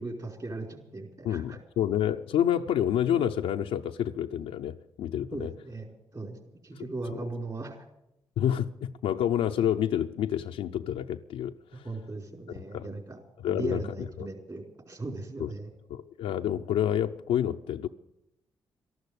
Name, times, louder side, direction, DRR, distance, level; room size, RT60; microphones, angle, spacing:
voice 1, 0.0-1.6 5.3-6.4 6.6-7.8 11.7-15.7, right 2 dB, 40° right, 4.8 m, -38 dB
voice 2, 1.2-5.5 8.4-11.8 12.7-12.9 13.4-14.3 15.4-15.5 15.9-17.9, left 10 dB, 85° left, 0.5 m, -28 dB
13.0 x 12.0 x 8.2 m
supercardioid pair, 50°, 10 cm